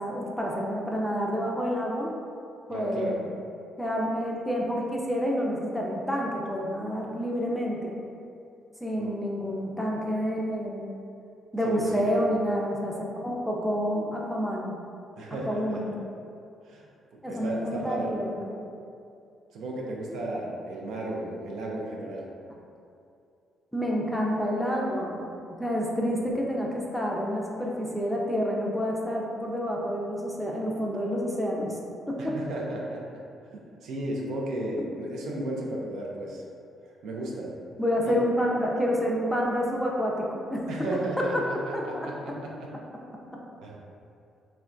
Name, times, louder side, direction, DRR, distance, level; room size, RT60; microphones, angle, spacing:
voice 1, 0.0-2.1 2.7-3.3 3.8-8.0 8.8-11.0 11.5-14.7 15.4-16.0 17.2-18.6 23.7-25.2 25.6-31.7 32.1-32.4 37.8-40.6 40.9-41.2 41.7-42.1, equal, ahead, -3 dB, 0.4 m, -28 dB
voice 2, 2.7-3.2 9.0-9.1 11.6-12.3 15.2-15.9 16.7-16.9 17.1-18.1 19.5-22.3 32.2-33.1 33.5-36.4 37.0-37.6 38.0-38.2 40.7-42.7 43.6-43.8, right 1 dB, 80° right, -2 dB, 0.4 m, -34 dB
3.2 x 2.2 x 2.5 m, 2.5 s
cardioid pair, 90°, 0 cm